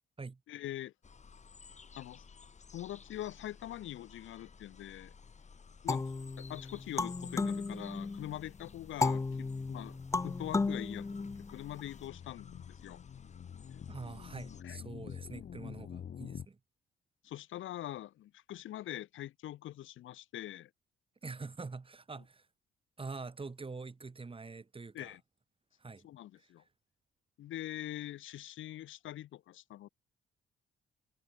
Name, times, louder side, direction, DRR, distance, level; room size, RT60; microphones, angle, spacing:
voice 1, 0.5-0.9 2.0-2.2 2.7-5.1 5.8-6.1 6.4-13.0 14.6-14.8 17.2-20.7 24.9-25.2 26.0-26.6 27.4-29.9, left 13 dB, 80° left, 2.3 m, -43 dB
sound 1, 1.0-14.6, left 5 dB, 35° left, 3.8 m, -56 dB
sound 2, 5.9-8.4 9.0-11.8, left 3 dB, 15° left, 0.4 m, -34 dB
sound 3, 7.9-16.5, left 8 dB, 55° left, 3.9 m, -49 dB
voice 2, 13.9-16.6 21.2-22.5 23.0-25.1 25.8-26.1 26.4-26.5, right 4 dB, 25° right, 7.0 m, -45 dB
cardioid pair, 90°, 20 cm